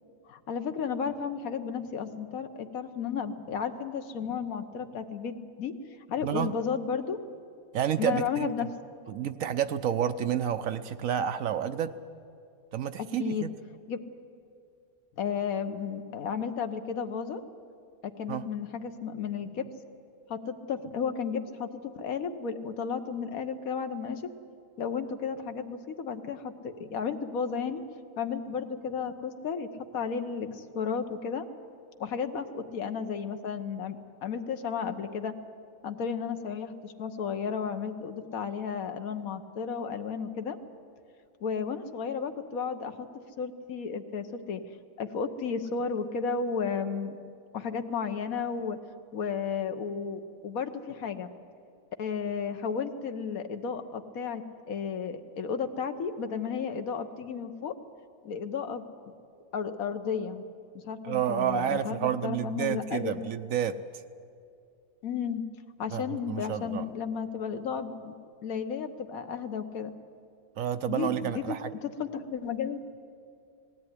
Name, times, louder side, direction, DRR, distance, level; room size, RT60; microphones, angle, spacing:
voice 1, 0.3-5.7 6.1-7.2 8.0-8.7 13.0-13.5 13.9-14.0 15.2-17.4 18.0-19.8 20.3-24.2 24.8-27.8 28.2-29.7 29.9-31.5 32.0-35.3 35.8-40.6 41.4-43.1 43.4-44.7 45.0-47.2 47.5-48.8 49.1-51.3 52.0-57.8 58.2-58.9 59.5-60.4 60.7-63.2 65.0-65.4 65.8-68.1 68.4-69.9 70.9-71.4 71.8-72.8, left 6 dB, 65° left, 7 dB, 1.5 m, -33 dB
voice 2, 7.7-8.5 9.1-11.9 12.7-13.5 18.3-18.5 61.0-63.8 65.9-66.8 70.6-71.7, right 9 dB, 65° right, 11 dB, 1.0 m, -30 dB
19.0 x 16.5 x 9.8 m, 2.4 s
omnidirectional pair, 1.7 m